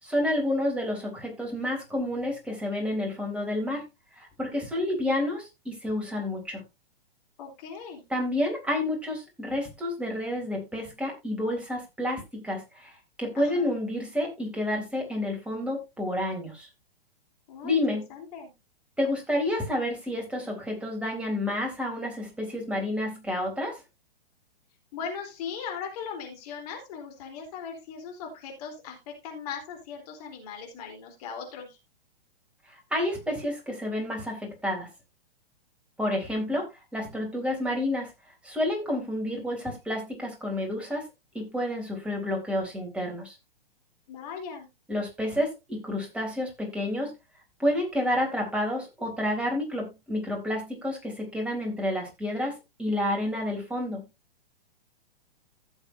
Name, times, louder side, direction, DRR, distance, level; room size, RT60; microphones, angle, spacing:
voice 1, 0.0-3.8 4.2-6.6 8.1-12.9 13.2-16.7 17.6-18.0 19.0-23.8 32.9-34.9 36.0-36.7 36.9-38.1 38.4-41.0 41.3-43.4 44.9-47.1 47.6-52.5 52.8-54.0, left 1 dB, 5° right, 0 dB, 3.5 m, -29 dB
voice 2, 4.8-5.2 7.4-8.0 13.4-13.7 17.5-18.5 24.9-31.8 44.1-44.7, left 6 dB, 40° left, 2 dB, 3.5 m, -39 dB
15.5 x 7.2 x 2.7 m, 0.24 s
figure-of-eight pair, 115°, 30 cm